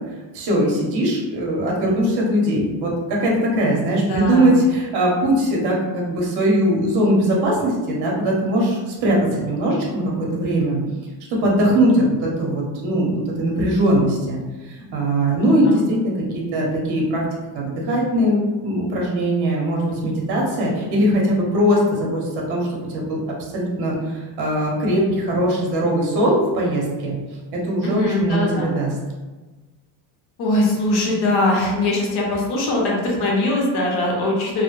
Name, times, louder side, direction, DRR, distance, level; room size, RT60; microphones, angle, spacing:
voice 1, 0.3-10.8 11.4-14.4 14.7-17.2 17.5-22.7 22.9-23.2 23.5-27.2 27.5-28.9, right 1 dB, 60° right, -2 dB, 0.8 m, -20 dB
voice 2, 4.0-4.5 15.4-15.8 27.8-28.7 30.4-34.6, left 2 dB, 55° left, -2 dB, 0.7 m, -21 dB
2.1 x 2.0 x 3.0 m, 1.2 s
cardioid pair, 155°, 46 cm